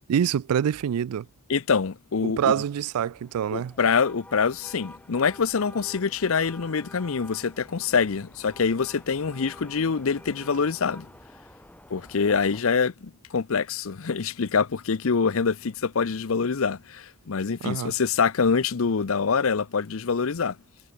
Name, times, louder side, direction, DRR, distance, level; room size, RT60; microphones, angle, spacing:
voice 1, 0.1-1.3 2.2-3.7 17.6-17.9, right 8 dB, 85° right, 0.3 m, -25 dB
voice 2, 1.5-2.5 3.5-11.1 11.9-20.6, left 5 dB, 70° left, 0.6 m, -25 dB
sound 1, 2.6-12.6, left 1 dB, 5° left, 2.8 m, -49 dB
head